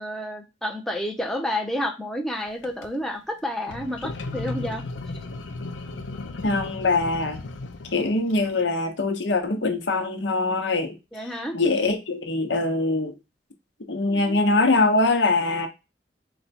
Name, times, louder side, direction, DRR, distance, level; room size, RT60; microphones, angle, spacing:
voice 1, 0.0-4.8 11.1-11.6 14.1-14.4, left 1 dB, ahead, 0.6 m, -30 dB
sound 1, 2.5-2.9 3.6-8.6, left 2 dB, 90° left, 0.5 m, -35 dB
voice 2, 6.4-7.4 7.9-11.0 11.5-13.1 13.9-15.7, left 3 dB, 70° left, 0.9 m, -23 dB
4.2 x 2.3 x 4.1 m
head